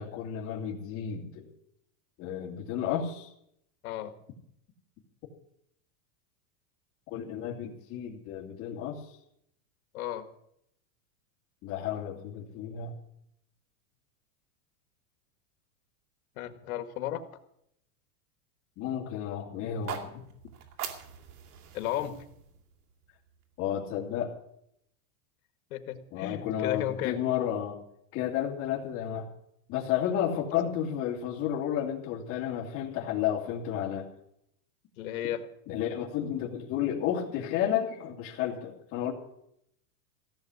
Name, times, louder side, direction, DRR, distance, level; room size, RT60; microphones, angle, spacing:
voice 1, 0.0-1.5 2.2-3.3 7.1-9.1 11.6-12.9 18.8-20.2 23.6-24.4 26.1-27.8 28.1-29.3 29.7-34.1 35.7-39.1, left 10 dB, 30° left, 0 dB, 2.4 m, -32 dB
voice 2, 9.9-10.3 16.4-17.2 21.7-22.2 25.7-27.2 35.0-35.5, left 12 dB, 70° left, 8 dB, 1.7 m, -34 dB
sound 1, 19.7-23.8, right 8 dB, 85° right, 2.7 m, -43 dB
16.0 x 7.4 x 9.5 m, 0.75 s
supercardioid pair, 170°, 45 cm